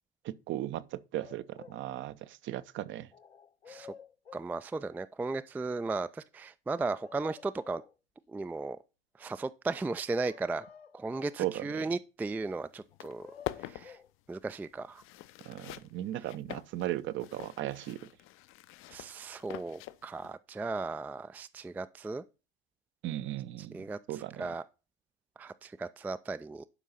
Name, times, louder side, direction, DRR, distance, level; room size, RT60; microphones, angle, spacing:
voice 1, 0.2-3.1 11.4-11.7 15.5-18.1 23.0-23.8 24.1-24.5, right 13 dB, 40° right, 0.7 m, -36 dB
sound 1, 1.1-1.8 3.1-4.5 6.7-7.9 10.2-11.4 12.9-14.1, left 7 dB, 90° left, 0.5 m, -52 dB
voice 2, 4.3-7.8 8.3-8.8 9.2-10.7 10.9-13.3 13.6-14.0 14.3-15.0 18.9-22.2 23.7-24.6 25.4-26.7, right 3 dB, 5° right, 0.3 m, -36 dB
sound 2, 12.4-12.5 12.8-20.3, left 16 dB, 45° left, 0.6 m, -45 dB
11.0 x 5.5 x 4.0 m
figure-of-eight pair, 60°, 30 cm